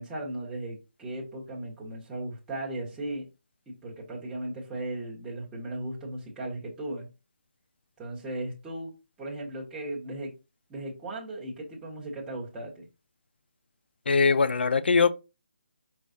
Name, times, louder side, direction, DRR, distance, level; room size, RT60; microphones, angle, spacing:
voice 1, 0.0-3.3 3.7-7.1 8.0-8.9 9.2-10.3 10.7-12.8, right 1 dB, 10° right, 1.1 m, -36 dB
voice 2, 14.1-15.1, left 5 dB, 70° left, 0.4 m, -21 dB
4.7 x 3.3 x 2.7 m
figure-of-eight pair, 160°, 6 cm